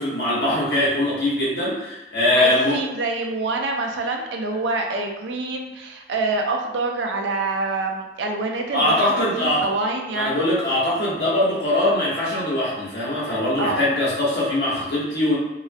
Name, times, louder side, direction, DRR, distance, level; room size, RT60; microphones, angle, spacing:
voice 1, 0.0-2.8 8.7-9.6 10.1-15.3, left 1 dB, 65° left, -7 dB, 0.9 m, -22 dB
voice 2, 2.4-10.4 13.6-13.8, right 3 dB, 80° right, 3 dB, 0.4 m, -26 dB
2.3 x 2.1 x 2.5 m, 1.0 s
head